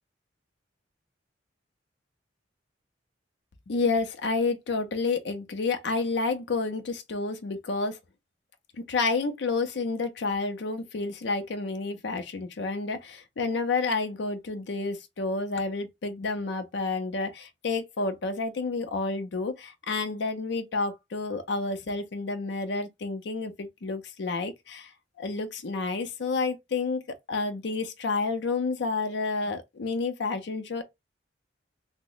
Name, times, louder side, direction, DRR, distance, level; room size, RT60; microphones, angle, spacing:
voice 1, 3.7-8.0 8.9-24.9 25.2-27.0 27.3-30.8, left 3 dB, 70° left, 0.5 m, -30 dB
2.9 x 2.1 x 3.8 m
head